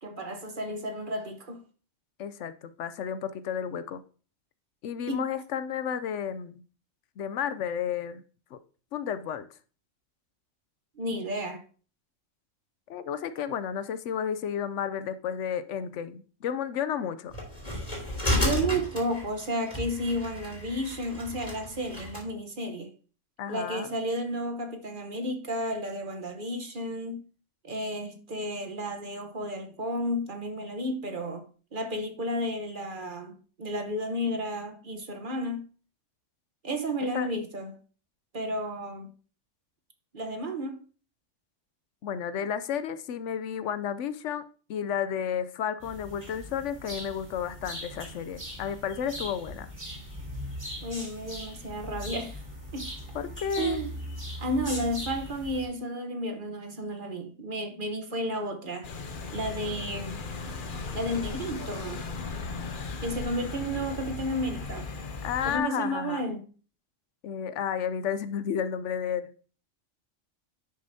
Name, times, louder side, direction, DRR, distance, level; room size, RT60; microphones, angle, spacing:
voice 1, 0.0-1.6 5.1-5.2 11.0-11.6 18.3-22.9 23.5-27.2 27.6-31.4 31.7-33.3 33.6-35.6 36.6-37.8 38.3-39.1 40.1-40.8 50.8-52.4 52.7-52.9 53.6-53.9 54.4-58.9 59.3-60.2 60.9-62.0 63.0-64.9 65.4-66.4, equal, 45° right, 1.1 m, -32 dB
voice 2, 2.2-4.0 4.8-6.6 7.2-8.2 8.5-8.6 8.9-9.4 12.9-17.3 23.4-23.9 37.0-37.3 42.0-44.4 44.7-49.7 53.1-53.8 65.2-66.2 67.2-69.3, left 8 dB, 75° left, 0.9 m, -32 dB
sound 1, 17.3-22.2, left 1 dB, 30° left, 3.2 m, -32 dB
sound 2, 45.8-55.7, equal, 20° right, 4.5 m, -40 dB
sound 3, 58.8-65.6, left 4 dB, 45° left, 0.9 m, -37 dB
10.5 x 6.6 x 2.7 m
omnidirectional pair, 1.3 m